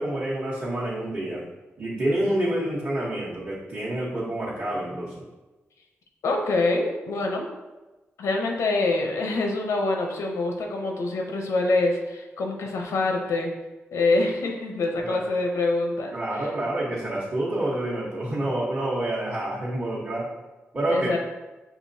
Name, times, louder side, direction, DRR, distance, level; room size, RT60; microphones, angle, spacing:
voice 1, 0.0-1.4 1.8-5.2 15.0-15.1 16.1-20.3 20.7-21.1, right 1 dB, 45° right, -8 dB, 1.0 m, -28 dB
voice 2, 6.2-7.5 8.2-13.5 13.9-16.1 20.9-21.2, left 2 dB, 90° left, 2 dB, 0.6 m, -25 dB
4.8 x 3.1 x 2.7 m, 1.1 s
cardioid pair, 70°, 5 cm